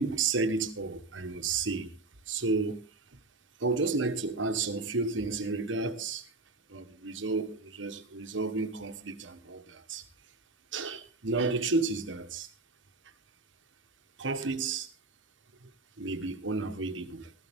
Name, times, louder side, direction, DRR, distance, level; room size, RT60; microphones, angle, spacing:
voice 1, 0.0-1.9 2.3-2.8 3.6-6.3 6.7-10.0 10.7-12.5 14.2-14.9 15.6-15.7 16.0-17.3, right 3 dB, 85° right, 1.4 m, -31 dB
15.0 x 14.0 x 3.6 m
head